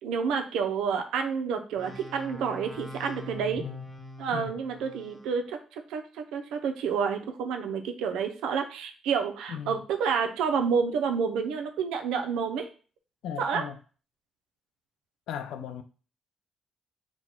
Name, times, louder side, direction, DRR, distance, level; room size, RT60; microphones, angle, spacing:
voice 1, 0.0-3.6 4.2-12.7 13.4-13.6, right 6 dB, 90° right, 0.6 m, -29 dB
sound 1, 1.8-5.4, left 1 dB, 10° left, 0.7 m, -43 dB
voice 2, 9.5-9.8 13.2-13.8 15.3-15.8, left 8 dB, 85° left, 0.5 m, -37 dB
4.4 x 2.3 x 4.3 m
cardioid pair, 90°, 0 cm